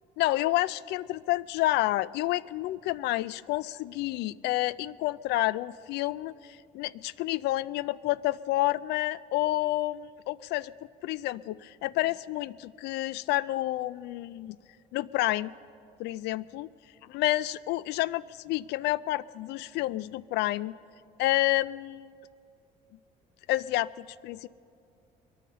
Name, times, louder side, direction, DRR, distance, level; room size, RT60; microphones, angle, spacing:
voice 1, 0.2-6.3 6.7-10.7 11.0-14.6 14.9-15.5 16.0-16.7 17.1-20.7 21.2-22.1 23.5-24.5, left 16 dB, 85° left, 20 dB, 0.4 m, -29 dB
23.0 x 9.3 x 6.8 m, 2.5 s
cardioid pair, 110°, 17 cm